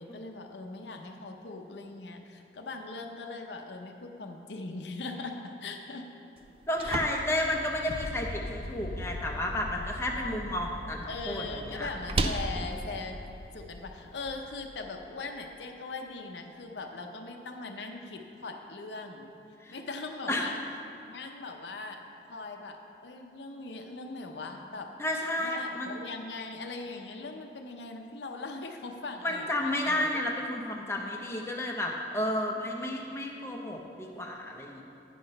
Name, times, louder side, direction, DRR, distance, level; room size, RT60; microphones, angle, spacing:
voice 1, 0.0-6.0 6.8-7.0 11.1-13.2 13.5-19.3 19.7-20.6 21.0-22.0 22.3-24.9 25.4-30.1, left 3 dB, 75° left, 4 dB, 0.7 m, -40 dB
sound 1, 6.4-14.3, right 2 dB, 30° right, 0.4 m, -38 dB
voice 2, 6.7-11.9 19.6-19.7 20.3-20.5 25.0-26.0 29.2-34.8, left 1 dB, 15° left, -1 dB, 0.7 m, -32 dB
sound 2, 7.9-15.4, left 2 dB, 50° left, 0.4 m, -42 dB
9.3 x 5.8 x 5.3 m, 2.8 s
head